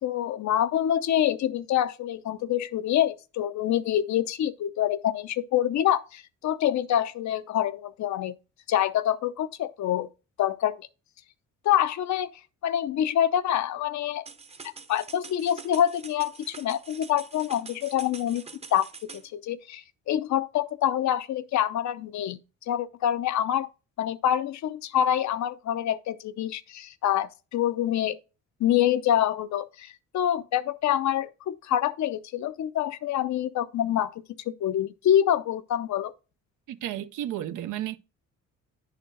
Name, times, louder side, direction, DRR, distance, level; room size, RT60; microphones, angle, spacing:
voice 1, 0.0-8.3 8.7-10.1 10.4-10.9 11.6-12.3 12.6-14.2 14.6-18.4 18.7-22.4 22.7-23.7 24.0-28.2 28.6-34.1 34.5-36.1, left 11 dB, 70° left, 0.7 m, -26 dB
sound 1, 14.3-19.3, right 4 dB, 20° right, 0.7 m, -45 dB
voice 2, 36.7-38.0, right 12 dB, 80° right, 0.7 m, -32 dB
9.9 x 4.3 x 3.8 m
cardioid pair, 90°, 30 cm